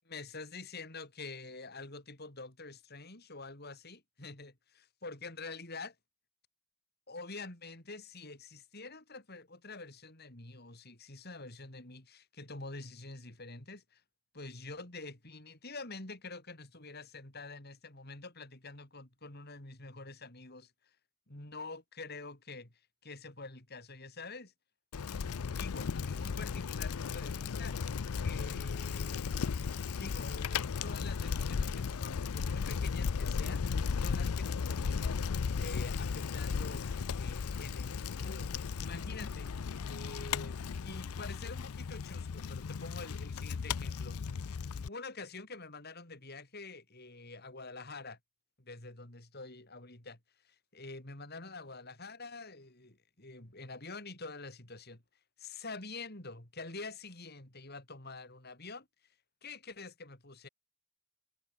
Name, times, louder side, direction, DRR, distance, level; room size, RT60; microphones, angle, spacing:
voice 1, 0.1-5.9 7.1-14.0 14.3-20.7 21.3-22.7 23.0-24.5 25.6-27.8 28.2-29.3 30.0-35.3 35.6-36.8 37.2-39.5 39.8-44.2 44.8-48.2 48.6-50.2 50.4-55.0 55.4-58.9 59.4-60.5, left 3 dB, 45° left, 3.6 m, -47 dB
Bicycle, 24.9-44.9, left 6 dB, 80° left, 0.5 m, -35 dB
head